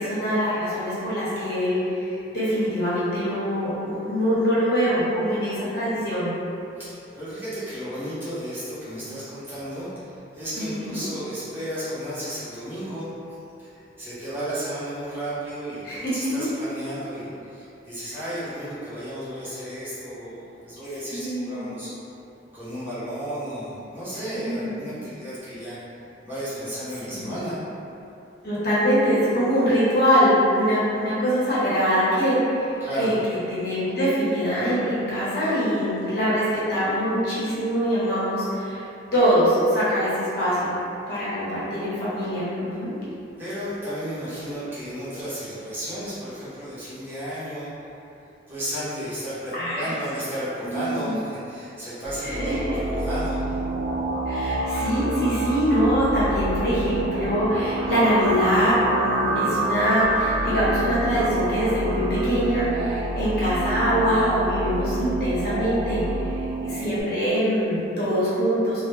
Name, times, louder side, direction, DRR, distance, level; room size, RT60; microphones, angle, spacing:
voice 1, 0.0-6.3 10.6-11.0 15.8-16.5 18.1-18.2 21.1-21.8 24.3-24.8 27.1-27.3 28.4-38.8 39.1-40.7 41.1-42.9 49.5-49.9 50.6-51.1 52.2-52.6 54.3-68.8, equal, 55° left, -10 dB, 0.8 m, -23 dB
voice 2, 6.7-13.1 13.6-21.9 22.5-25.8 26.2-27.6 32.8-33.2 43.4-47.8 48.5-53.6, equal, 10° right, -13 dB, 0.7 m, -33 dB
sound 1, 52.0-67.0, right 2 dB, 65° right, 0.4 m, -27 dB
2.1 x 2.0 x 3.1 m, 2.8 s
head